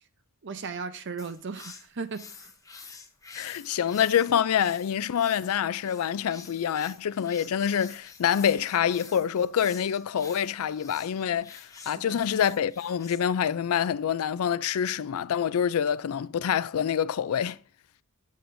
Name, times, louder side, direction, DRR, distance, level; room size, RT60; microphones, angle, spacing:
voice 1, 0.4-2.5 11.8-12.2, right 5 dB, 55° right, 0.6 m, -37 dB
sound 1, 1.2-13.2, left 5 dB, 15° left, 0.8 m, -49 dB
voice 2, 3.3-17.6, left 8 dB, 80° left, 0.4 m, -26 dB
8.4 x 7.7 x 2.6 m
head